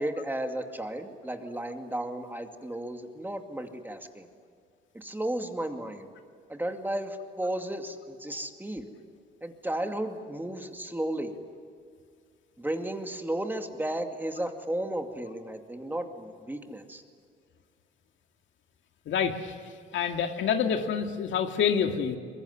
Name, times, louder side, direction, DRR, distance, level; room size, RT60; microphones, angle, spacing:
voice 1, 0.0-4.3 4.9-6.1 6.5-8.9 9.4-11.3 12.6-17.0, right 1 dB, 10° right, 5 dB, 2.4 m, -34 dB
voice 2, 19.1-19.6 19.9-22.2, left 7 dB, 75° left, 5 dB, 2.0 m, -27 dB
24.0 x 21.5 x 9.9 m, 2.2 s
cardioid pair, 90°, 20 cm